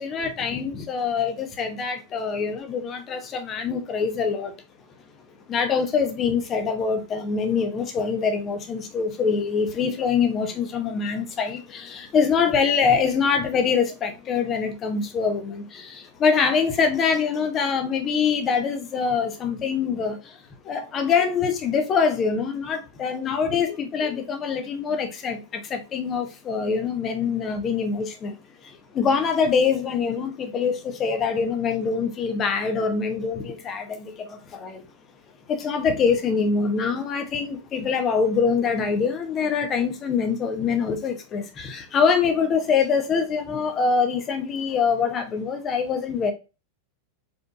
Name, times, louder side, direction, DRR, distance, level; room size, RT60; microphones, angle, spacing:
voice 1, 0.0-4.5 5.5-20.2 20.6-28.3 28.9-34.8 35.5-46.3, left 5 dB, 30° left, 1.0 m, -24 dB
5.0 x 3.8 x 2.5 m
figure-of-eight pair, 90°, 0 cm